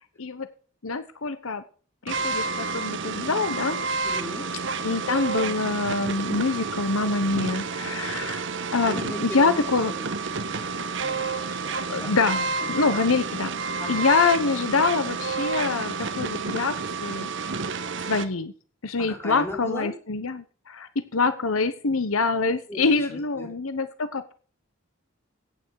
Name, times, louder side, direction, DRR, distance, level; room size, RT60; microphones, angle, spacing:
voice 1, 0.8-1.6 2.0-3.8 4.8-8.5 8.7-9.9 11.9-16.7 17.0-17.6 18.1-18.5 18.8-24.3, left 4 dB, 75° left, 12 dB, 1.0 m, -25 dB
sound 1, 2.1-18.3, right 4 dB, 60° right, 1.1 m, -30 dB
voice 2, 4.0-4.5 8.9-12.2 12.6-13.1 13.5-14.1 19.1-19.9 22.7-23.5, left 1 dB, 10° left, 0 dB, 4.2 m, -39 dB
15.0 x 9.2 x 4.8 m, 0.39 s
head